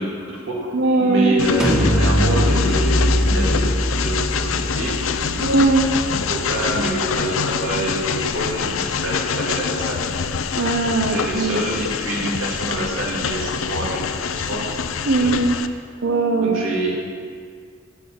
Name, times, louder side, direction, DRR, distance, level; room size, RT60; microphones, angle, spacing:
voice 1, 0.0-0.7 1.0-5.5 6.0-10.0 10.9-15.3 16.4-16.9, right 1 dB, 90° right, -3 dB, 2.8 m, -27 dB
voice 2, 0.7-1.4 5.4-5.9 10.5-11.6 15.1-15.6 16.0-16.6, right 3 dB, 70° right, 1 dB, 0.9 m, -19 dB
Train, 1.4-15.7, left 6 dB, 90° left, 0.6 m, -25 dB
sound 1, 1.6-7.2, equal, 5° right, 1.3 m, -22 dB
9.1 x 8.3 x 8.6 m, 2.1 s
head